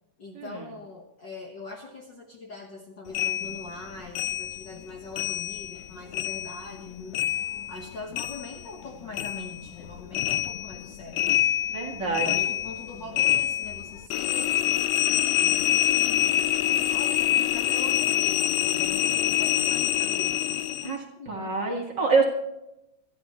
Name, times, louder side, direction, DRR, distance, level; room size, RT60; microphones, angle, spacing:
voice 1, 0.2-7.2 7.7-11.4 12.0-16.3 16.9-21.5, left 3 dB, 45° left, 1 dB, 1.7 m, -42 dB
sound 1, 3.1-5.9 6.1-8.9 9.1-20.9, left 11 dB, 80° left, 1.9 m, -26 dB
voice 2, 11.7-12.4 20.8-21.0 21.3-22.3, right 4 dB, 40° right, 0 dB, 2.2 m, -26 dB
26.0 x 10.5 x 3.1 m, 0.87 s
omnidirectional pair, 3.4 m